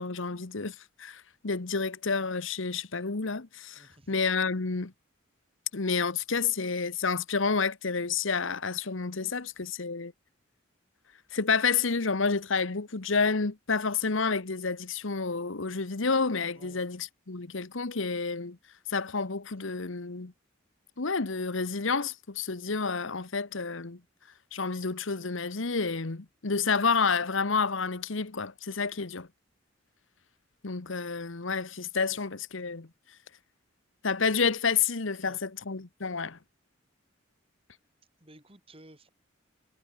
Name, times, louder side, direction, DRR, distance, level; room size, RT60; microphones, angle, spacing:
voice 1, 0.0-4.9 5.7-10.1 11.3-18.6 18.9-20.3 21.0-24.0 24.5-29.3 30.6-32.9 34.0-36.4, left 5 dB, 70° left, 1.2 m, -29 dB
voice 2, 3.8-4.2 9.3-9.7 16.6-16.8 32.1-32.2 35.2-35.4 38.2-39.1, right 1 dB, 25° right, 6.0 m, -55 dB
head